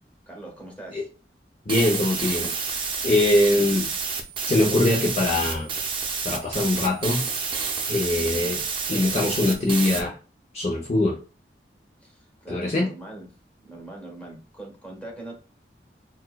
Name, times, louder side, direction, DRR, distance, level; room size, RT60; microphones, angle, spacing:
voice 1, 0.3-1.1 12.0-13.3 13.6-15.3, right 2 dB, 10° left, 1.1 m, -41 dB
voice 2, 1.7-3.9 4.5-5.7 6.2-7.2 7.9-8.6 8.9-10.2 10.5-11.2 12.5-12.9, left 2 dB, 40° left, 0.5 m, -22 dB
sound 1, 1.7-10.0, right 5 dB, 30° right, 0.6 m, -29 dB
4.2 x 2.2 x 2.2 m
head